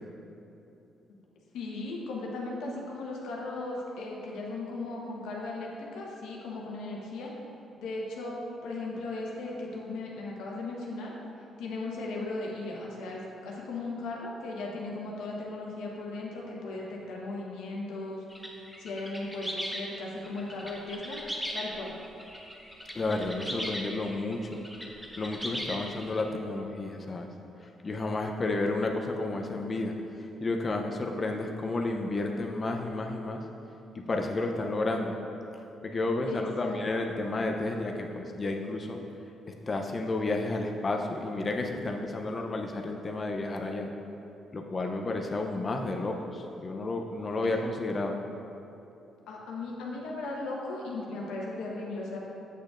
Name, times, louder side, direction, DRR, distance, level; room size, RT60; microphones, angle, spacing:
voice 1, 1.5-7.3 7.8-8.4 8.6-11.1 11.6-18.2 18.8-21.2 21.5-21.9 36.3-37.1 47.4-47.6 49.3-52.2, left 2 dB, 90° left, -3 dB, 1.1 m, -37 dB
sound 1, 18.3-26.2, equal, ahead, 0.8 m, -38 dB
voice 2, 22.9-24.7 25.2-27.3 27.8-29.9 30.4-33.4 33.9-35.2 35.8-39.0 39.5-43.9 44.5-48.2, left 2 dB, 35° left, 2 dB, 0.5 m, -31 dB
8.0 x 6.3 x 2.5 m, 2.9 s
cardioid pair, 90°, 0 cm